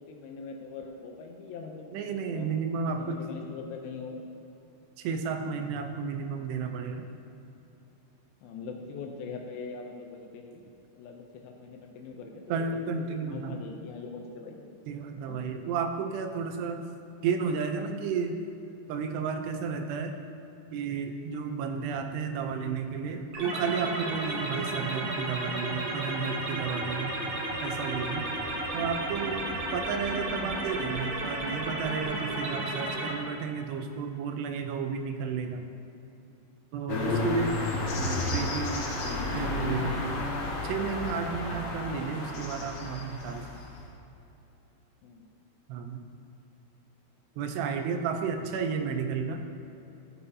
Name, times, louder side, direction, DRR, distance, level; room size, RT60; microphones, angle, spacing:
voice 1, 0.0-2.5 3.0-4.2 5.4-5.6 8.4-10.6 10.9-12.8 13.1-14.7 15.3-15.4 28.6-28.9 45.0-45.3 47.8-47.9 48.3-48.5 48.8-48.9, left 4 dB, 80° left, 2 dB, 2.3 m, -42 dB
voice 2, 1.9-3.2 5.0-7.1 12.5-13.6 14.9-16.9 17.2-18.4 18.9-20.2 20.7-27.1 27.6-28.3 28.7-35.6 36.7-37.6 38.0-38.9 39.3-43.5 45.7-46.0 47.4-49.4, right 5 dB, 90° right, 5 dB, 2.8 m, -32 dB
sound 1, 23.3-33.1, right 2 dB, 65° right, 1.7 m, -33 dB
sound 2, 36.9-43.8, left 2 dB, 65° left, 3.1 m, -32 dB
13.5 x 7.1 x 2.7 m, 2.9 s
omnidirectional pair, 4.7 m